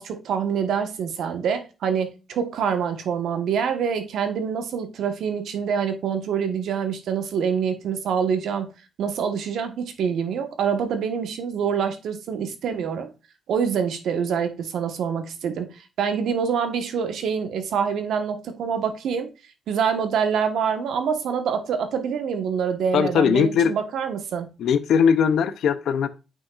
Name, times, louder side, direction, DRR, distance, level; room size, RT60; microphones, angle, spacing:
voice 1, 0.0-8.7 9.0-13.1 13.5-19.3 19.7-24.5, right 7 dB, 70° right, 1.3 m, -26 dB
voice 2, 22.9-23.7 24.6-26.1, left 7 dB, 70° left, 0.7 m, -20 dB
8.9 x 5.9 x 2.5 m
cardioid pair, 145°, 0 cm